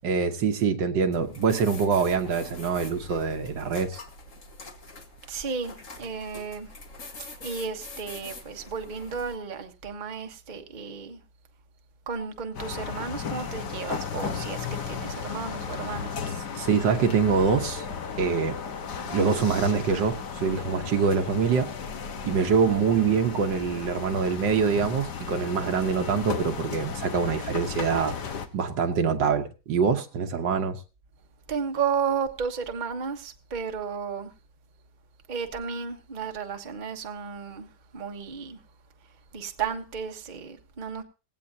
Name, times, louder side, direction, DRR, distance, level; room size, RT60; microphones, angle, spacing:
voice 1, 0.0-4.0 16.5-17.8 18.2-18.6 19.1-21.7 22.2-28.1 28.5-30.8, right 6 dB, 75° right, 1.8 m, -24 dB
sound 1, 1.1-9.4, left 3 dB, 45° left, 2.0 m, -44 dB
voice 2, 5.3-6.7 7.2-11.2 12.1-16.2 31.5-34.3 35.3-38.6 39.3-41.0, right 6 dB, 30° right, 1.1 m, -33 dB
sound 2, 12.5-28.5, left 6 dB, 65° left, 1.8 m, -35 dB
18.5 x 16.5 x 2.8 m
omnidirectional pair, 2.0 m